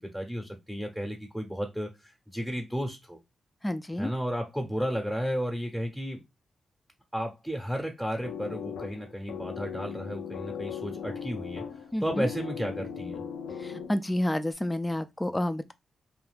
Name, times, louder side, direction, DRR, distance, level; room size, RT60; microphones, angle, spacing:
voice 1, 0.1-3.2 4.0-6.2 7.1-11.6 12.0-13.2, equal, 5° right, 0.7 m, -33 dB
voice 2, 3.6-4.1 11.9-12.3 13.6-15.7, left 1 dB, 15° left, 0.3 m, -29 dB
sound 1, 8.2-14.2, left 7 dB, 90° left, 0.4 m, -38 dB
2.5 x 2.2 x 3.3 m
supercardioid pair, 50°, 0 cm